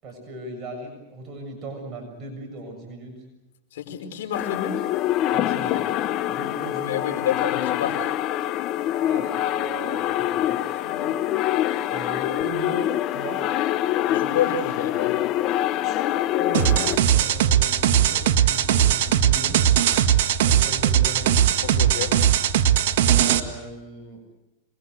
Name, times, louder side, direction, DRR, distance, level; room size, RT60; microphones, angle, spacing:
voice 1, 0.0-3.2 5.3-5.8 6.3-7.1 9.0-11.2 11.9-13.4 16.4-19.6 20.4-21.4 23.1-24.2, right 1 dB, 30° right, 1 dB, 7.1 m, -37 dB
voice 2, 3.7-4.8 6.8-8.1 14.1-15.1 21.6-22.1, left 8 dB, 75° left, 5 dB, 4.8 m, -28 dB
sound 1, 4.3-17.0, left 13 dB, 40° left, 0.8 m, -25 dB
sound 2, 16.5-23.4, right 10 dB, 65° right, 1.7 m, -19 dB
26.5 x 21.5 x 8.0 m, 0.98 s
hypercardioid pair, 125°, 0 cm